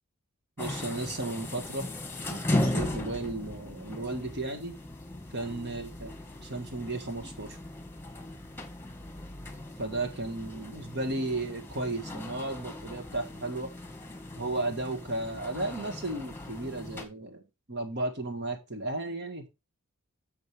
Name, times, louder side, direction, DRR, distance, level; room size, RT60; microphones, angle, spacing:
sound 1, 0.6-17.1, left 1 dB, 10° left, 1.6 m, -37 dB
voice 1, 0.6-1.9 2.3-4.8 5.3-6.1 6.4-7.6 9.8-13.7 14.4-17.4 17.7-19.5, right 2 dB, 50° right, 5 dB, 1.9 m, -34 dB
10.5 x 6.9 x 3.5 m, 0.25 s
head